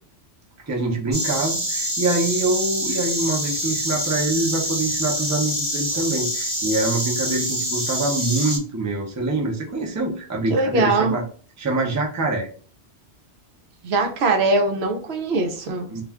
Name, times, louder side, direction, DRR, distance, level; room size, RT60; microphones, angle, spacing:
voice 1, 0.6-11.2 11.6-12.5 15.9-16.0, right 2 dB, 25° right, 0 dB, 0.4 m, -25 dB
Insect, 1.1-8.6, equal, 10° right, 0.9 m, -26 dB
voice 2, 10.5-11.2 13.8-16.0, right 3 dB, 70° right, 4 dB, 0.8 m, -21 dB
2.3 x 2.3 x 3.3 m, 0.42 s
omnidirectional pair, 1.2 m